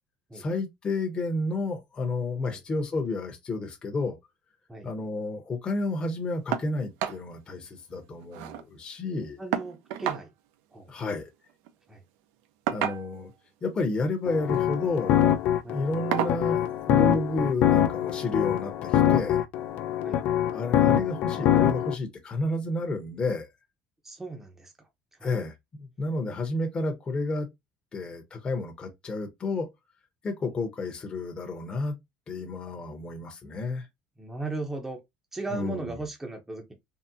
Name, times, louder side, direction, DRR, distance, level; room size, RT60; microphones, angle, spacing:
voice 1, 0.3-4.2 4.8-9.4 10.9-11.3 12.7-13.3 13.6-15.2 15.7-16.6 16.9-19.4 20.5-23.5 25.2-27.5 27.9-29.7 30.2-32.0 32.3-33.9 35.5-36.0, left 2 dB, 25° left, 0.8 m, -31 dB
sound 1, 6.5-6.7 7.0-7.2 7.6-7.7 8.0-8.6 9.5-10.3 11.5-11.7 12.7-13.3 14.4-14.7 15.1-15.3 16.1-16.4 17.7-17.8 18.3-18.4, right 10 dB, 85° right, 0.5 m, -31 dB
voice 2, 9.4-10.3 10.7-10.9 11.9-12.0 15.6-15.8 20.0-20.2 24.0-24.7 25.2-25.3 34.2-35.0 35.3-36.7, right 3 dB, 10° right, 0.7 m, -36 dB
sound 2, 14.3-21.9, left 11 dB, 60° left, 0.4 m, -24 dB
3.7 x 2.0 x 2.6 m
cardioid pair, 135°, 4 cm